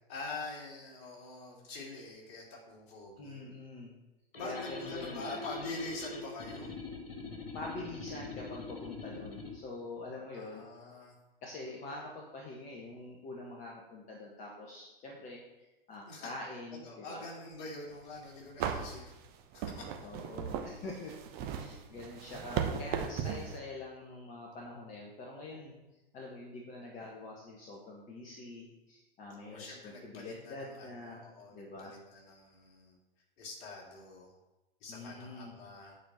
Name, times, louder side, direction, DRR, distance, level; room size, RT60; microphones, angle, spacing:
voice 1, 0.1-3.4 4.3-6.7 10.3-11.1 16.1-16.3 16.7-19.1 19.5-19.9 29.4-33.0 33.4-34.3 34.8-36.0, left 3 dB, 45° left, -1 dB, 3.0 m, -45 dB
voice 2, 3.2-3.9 4.4-5.4 7.5-10.6 11.4-15.4 15.9-17.3 20.0-21.1 21.5-25.7 26.1-31.2 31.5-31.9 34.9-35.5, left 2 dB, 25° left, -3 dB, 1.7 m, -45 dB
sound 1, 4.3-9.6, left 3 dB, 70° left, 2.2 m, -43 dB
sound 2, 18.0-18.1 18.6-23.6, right 7 dB, 30° right, 0.9 m, -37 dB
8.6 x 4.9 x 7.1 m, 0.99 s
figure-of-eight pair, 100°, 30 cm